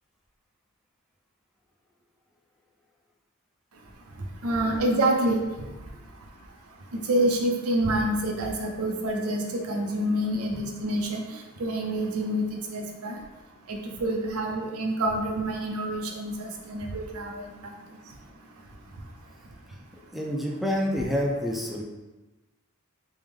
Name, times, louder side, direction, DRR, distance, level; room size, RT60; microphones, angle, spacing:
voice 1, 4.4-5.4 7.1-11.2 11.6-13.2 13.7-17.4, right 1 dB, 85° right, 1 dB, 0.7 m, -27 dB
voice 2, 20.1-21.8, equal, ahead, -1 dB, 0.4 m, -27 dB
3.6 x 3.0 x 3.3 m, 1.1 s
head